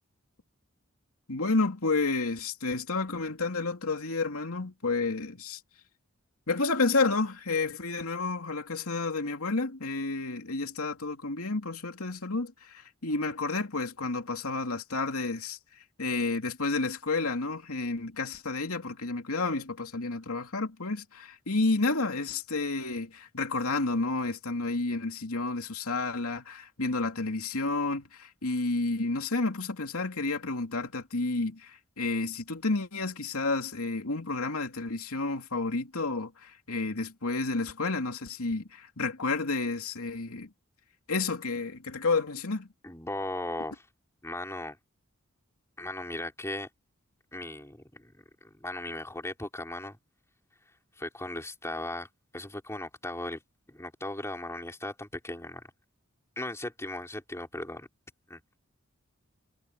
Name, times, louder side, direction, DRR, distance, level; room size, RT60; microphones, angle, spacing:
voice 1, 1.3-5.6 6.5-15.6 16.0-40.5 41.1-42.7, left 3 dB, 90° left, 2.7 m, -30 dB
voice 2, 42.8-43.9 44.2-44.8 45.8-46.7 47.3-48.1 48.4-50.0 51.0-52.1 52.3-53.4 53.7-55.6 56.4-57.9 58.3-58.4, left 1 dB, 15° left, 3.6 m, -37 dB
head